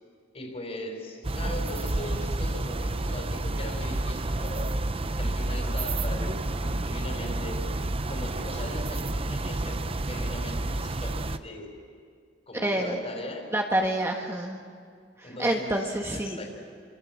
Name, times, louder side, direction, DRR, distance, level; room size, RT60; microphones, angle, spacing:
voice 1, 0.3-4.7 5.2-7.7 8.1-11.8 12.5-13.5 15.2-16.5, left 1 dB, 35° left, 3 dB, 4.9 m, -39 dB
sound 1, 1.2-11.4, right 2 dB, 30° right, 0.8 m, -30 dB
voice 2, 12.5-13.0 13.5-14.6 15.2-16.5, right 1 dB, 15° right, 1 dB, 1.5 m, -28 dB
28.5 x 25.5 x 7.5 m, 2.1 s
head